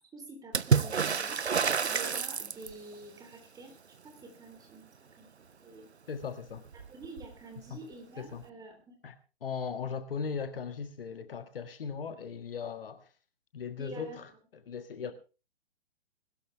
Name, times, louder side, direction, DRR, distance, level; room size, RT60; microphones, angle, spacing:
voice 1, 0.1-1.4 1.9-3.8 4.0-4.9 5.2-5.3 5.6-5.9 6.9-8.9 13.8-14.2 15.0-15.1, right 3 dB, 10° right, 3.5 m, -48 dB
Water / Splash splatter, 0.5-2.9 6.2-6.3 6.6-7.3 8.4-8.5, right 6 dB, 85° right, 0.7 m, -28 dB
voice 2, 6.1-6.6 7.7-7.8 8.2-8.4 9.0-13.1 13.5-14.3 14.7-15.1, left 6 dB, 60° left, 1.6 m, -38 dB
20.5 x 12.5 x 3.4 m
figure-of-eight pair, 120°, 32 cm